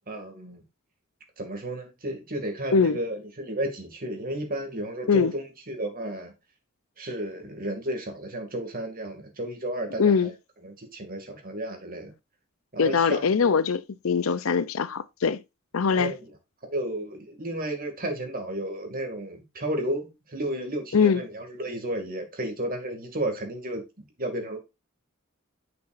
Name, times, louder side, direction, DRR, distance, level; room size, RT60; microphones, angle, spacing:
voice 1, 0.1-0.6 1.4-6.3 7.0-10.3 10.6-12.1 12.7-13.6 15.9-16.3 16.6-23.8 24.2-24.6, right 1 dB, 45° right, 2.4 m, -33 dB
voice 2, 10.0-10.3 12.8-15.4 15.7-16.1 20.9-21.2, left 5 dB, 80° left, 0.6 m, -22 dB
9.7 x 6.1 x 2.6 m
head